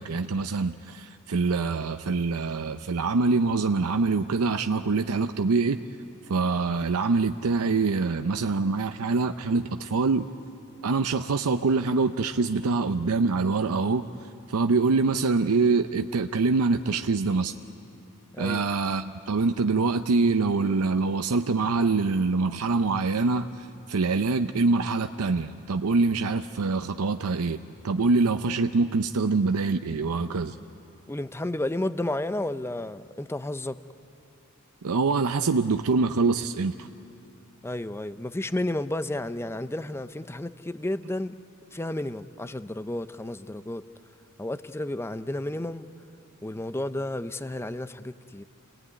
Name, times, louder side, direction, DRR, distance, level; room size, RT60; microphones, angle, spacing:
voice 1, 0.0-5.8 6.3-10.3 10.8-14.1 14.5-17.5 18.4-30.6 34.8-36.9, right 4 dB, 80° right, 8 dB, 0.6 m, -25 dB
voice 2, 18.3-18.6 31.1-33.8 37.6-41.4 41.7-43.8 44.4-45.9 46.4-48.4, left 1 dB, 10° left, 13 dB, 0.5 m, -32 dB
27.5 x 18.5 x 9.6 m, 2.7 s
head